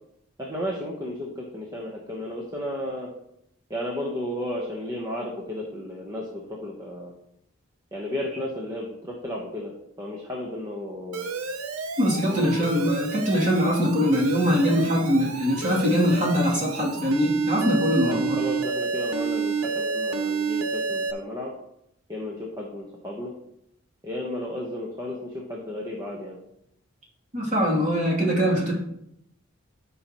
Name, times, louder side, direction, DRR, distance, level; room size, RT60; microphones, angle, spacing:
voice 1, 0.4-3.1 3.7-7.1 7.9-11.3 12.3-12.8 18.1-21.5 22.1-23.3 24.0-26.4, left 1 dB, 15° right, -2 dB, 1.1 m, -33 dB
Alarm, 11.1-21.1, right 4 dB, 85° right, 0.8 m, -30 dB
voice 2, 12.0-18.4 27.3-28.7, equal, 35° right, -4 dB, 2.8 m, -22 dB
13.0 x 5.5 x 3.0 m, 0.78 s
head